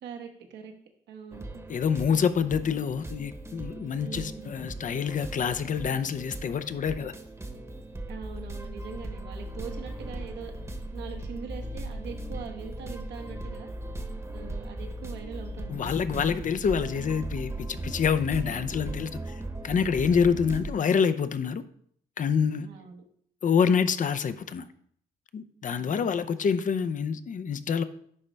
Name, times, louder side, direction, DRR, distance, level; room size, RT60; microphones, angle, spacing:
voice 1, 0.0-0.7 1.1-1.6 4.0-4.5 8.1-10.5 10.9-13.7 14.3-16.3 20.3-20.6 22.7-23.0 25.7-26.4, right 6 dB, 80° right, 1.2 m, -43 dB
sound 1, 1.3-20.7, right 1 dB, 15° right, 1.1 m, -38 dB
voice 2, 1.7-7.1 15.7-21.6 22.2-22.7 23.4-24.7 25.3-27.8, left 6 dB, 45° left, 0.6 m, -27 dB
11.0 x 4.0 x 3.4 m
supercardioid pair, 65°, 18 cm